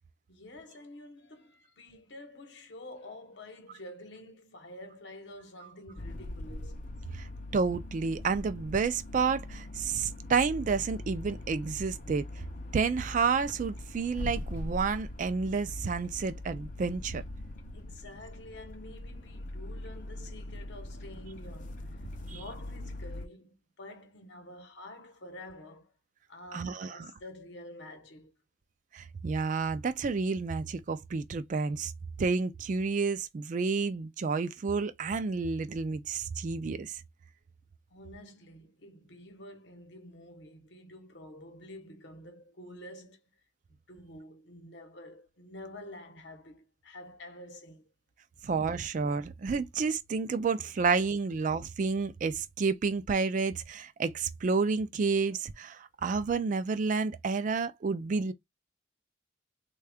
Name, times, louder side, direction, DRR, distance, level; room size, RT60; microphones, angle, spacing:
voice 1, 0.3-6.9 17.7-25.9 26.3-28.3 37.9-43.2 43.7-47.9, left 1 dB, 65° left, 0.9 m, -48 dB
sound 1, 6.0-23.3, left 1 dB, 45° left, 0.5 m, -41 dB
voice 2, 7.5-12.2 12.7-17.2 22.3-22.4 26.5-27.1 28.9-31.9 32.2-37.0 48.4-58.3, right 4 dB, 40° right, 0.3 m, -30 dB
3.5 x 2.3 x 3.3 m
head